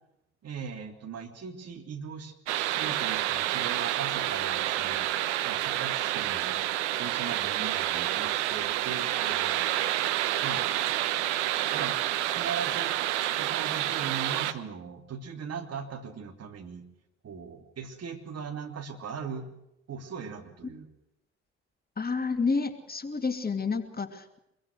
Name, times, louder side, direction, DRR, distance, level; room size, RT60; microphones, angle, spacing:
voice 1, 0.4-5.0 5.4-6.6 6.9-9.7 10.4-10.7 11.7-12.0 12.3-13.0 13.3-16.8 17.2-19.5 19.9-20.9, right 6 dB, 45° right, 4 dB, 3.2 m, -39 dB
sound 1, 2.5-14.5, right 13 dB, 70° right, 1.0 m, -29 dB
voice 2, 22.0-24.4, left 4 dB, 25° left, 8 dB, 2.4 m, -30 dB
25.0 x 22.5 x 6.5 m, 0.82 s
figure-of-eight pair, 45°, 36 cm